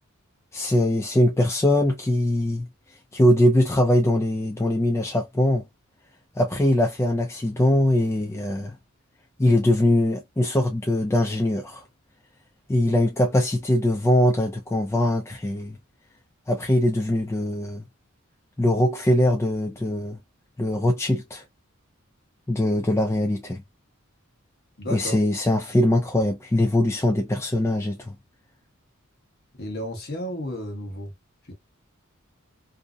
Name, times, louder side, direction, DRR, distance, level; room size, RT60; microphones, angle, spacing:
voice 1, 0.5-2.7 3.1-5.6 6.4-8.7 9.4-11.8 12.7-15.8 16.5-17.8 18.6-20.2 20.6-21.4 22.5-23.6 24.9-28.2, left 1 dB, 15° left, 0.3 m, -22 dB
voice 2, 24.8-25.2 29.6-31.1 31.5-31.6, equal, 50° left, 1.0 m, -32 dB
2.6 x 2.0 x 2.4 m
head